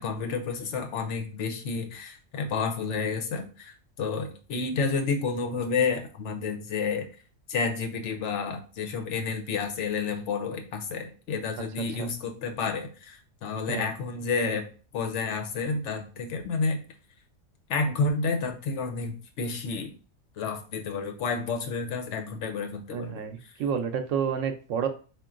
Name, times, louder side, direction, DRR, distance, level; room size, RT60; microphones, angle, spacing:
voice 1, 0.0-7.1 7.5-14.7 14.9-16.8 17.7-19.9 20.4-23.2, left 4 dB, 75° left, 5 dB, 1.0 m, -30 dB
voice 2, 22.9-24.9, right 7 dB, 90° right, 7 dB, 1.0 m, -30 dB
3.6 x 2.4 x 3.7 m, 0.37 s
omnidirectional pair, 1.3 m